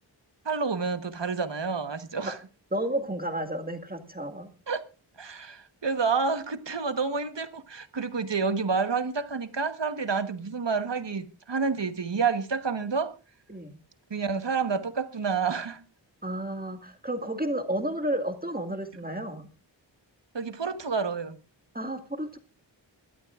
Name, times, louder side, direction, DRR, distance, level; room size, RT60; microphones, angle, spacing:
voice 1, 0.4-2.4 4.7-4.8 5.2-13.1 14.1-15.8 20.3-21.4, right 5 dB, 65° right, 1.3 m, -29 dB
voice 2, 2.7-4.5 13.5-13.8 16.2-19.5 21.7-22.4, right 1 dB, 20° right, 1.9 m, -32 dB
23.5 x 12.5 x 2.5 m
wide cardioid pair, 55°, 46 cm